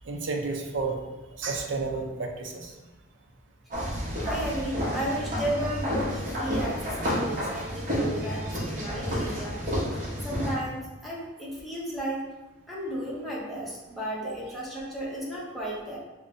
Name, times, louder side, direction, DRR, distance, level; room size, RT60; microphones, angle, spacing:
voice 1, 0.1-1.0 1.4-2.7 14.3-14.4, right 3 dB, 70° right, 2 dB, 0.5 m, -31 dB
sound 1, 3.7-10.5, equal, 40° right, 0.9 m, -30 dB
voice 2, 4.2-9.6 10.2-12.2 12.7-16.0, right 1 dB, ahead, -6 dB, 0.7 m, -34 dB
5.1 x 2.1 x 2.6 m, 1.1 s
head